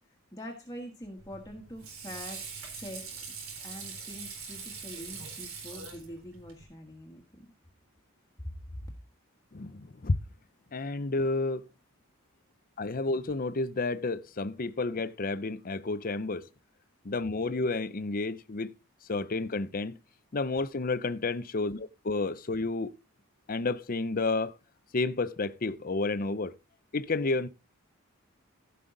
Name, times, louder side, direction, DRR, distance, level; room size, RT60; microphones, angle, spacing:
voice 1, 0.3-2.4 2.7-3.1 3.6-7.5 8.4-8.9, equal, 15° left, 1.4 m, -44 dB
Water / Sink (filling or washing), 1.2-6.6, right 5 dB, 70° right, 4.1 m, -43 dB
voice 2, 9.5-10.2 10.7-11.6 12.8-16.5 17.0-18.8 19.1-20.0 20.3-22.9 23.5-24.5 24.9-26.6 26.9-27.5, left 3 dB, 40° left, 0.6 m, -31 dB
15.5 x 5.6 x 3.8 m
head